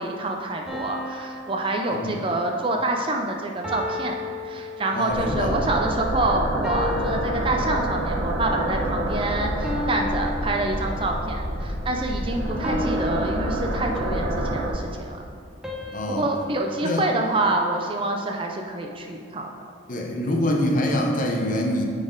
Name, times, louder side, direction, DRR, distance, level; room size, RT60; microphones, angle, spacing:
voice 1, 0.0-4.2 4.5-15.2 16.1-19.5, right 2 dB, 25° right, 2 dB, 0.5 m, -27 dB
sound 1, 0.7-2.6 3.6-5.3 6.6-8.2 9.6-11.3 12.6-14.3 15.6-18.0, left 2 dB, 5° right, 0.8 m, -34 dB
voice 2, 4.9-5.7 12.6-12.8 15.9-16.3 16.8-17.1 19.9-21.8, left 1 dB, 40° left, 1 dB, 0.8 m, -25 dB
sound 2, 5.1-14.7, right 1 dB, 75° right, 1.0 m, -28 dB
9.6 x 4.1 x 3.9 m, 2.4 s
head